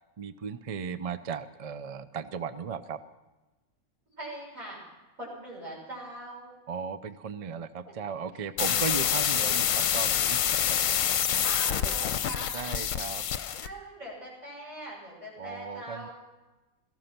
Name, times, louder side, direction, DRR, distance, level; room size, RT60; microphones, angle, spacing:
voice 1, 0.2-3.0 6.7-10.4 10.7-10.8 12.5-13.2 15.4-16.1, right 6 dB, 45° right, 12 dB, 0.4 m, -36 dB
voice 2, 4.2-4.8 5.2-6.5 8.6-9.1 11.4-12.6 13.6-16.1, right 1 dB, 70° right, -6 dB, 7.3 m, -41 dB
sound 1, 8.6-13.7, left 9 dB, 70° left, 1.1 m, -27 dB
18.0 x 14.0 x 5.9 m, 1.1 s
omnidirectional pair, 1.5 m